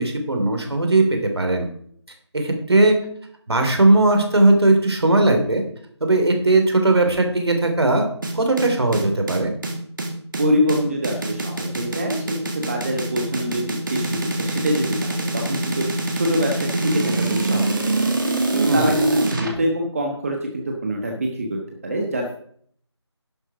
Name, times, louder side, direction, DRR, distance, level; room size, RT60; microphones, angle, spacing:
voice 1, 0.0-1.7 2.3-3.0 3.5-5.6 6.0-8.1 8.3-9.5 18.7-19.0, right 2 dB, 60° right, 4 dB, 3.1 m, -18 dB
sound 1, 8.2-19.5, right 2 dB, 45° right, 2.2 m, -24 dB
voice 2, 10.4-15.8 16.1-18.1 18.5-22.3, equal, 30° right, 1 dB, 1.3 m, -25 dB
11.5 x 8.0 x 4.9 m, 0.62 s
figure-of-eight pair, 165°, 15 cm